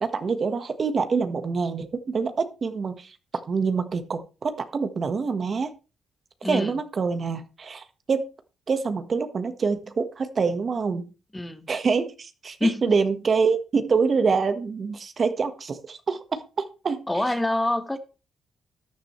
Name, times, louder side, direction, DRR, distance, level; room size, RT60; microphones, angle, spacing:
voice 1, 0.0-3.2 3.5-5.7 6.4-8.2 8.7-11.1 11.7-17.0 17.3-17.4, right 5 dB, 45° right, 1.4 m, -26 dB
voice 2, 6.4-6.7 11.3-11.7 12.6-12.8 17.1-18.0, left 1 dB, 10° left, 1.4 m, -25 dB
14.0 x 10.0 x 3.2 m
cardioid pair, 85°, 0 cm